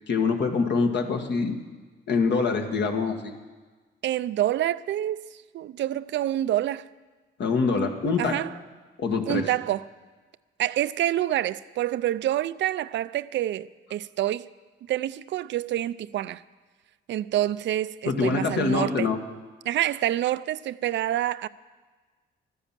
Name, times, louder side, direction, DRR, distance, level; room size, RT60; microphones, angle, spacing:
voice 1, 0.1-1.6 2.1-3.3 7.4-8.3 9.0-9.4 18.0-19.2, left 4 dB, 60° left, 1.7 m, -24 dB
voice 2, 4.0-5.3 5.5-6.9 8.2-8.5 9.3-9.8 10.6-14.5 14.9-16.4 17.1-19.1 19.7-21.5, right 13 dB, 65° right, 0.5 m, -27 dB
13.0 x 10.0 x 7.4 m
cardioid pair, 90°, 20 cm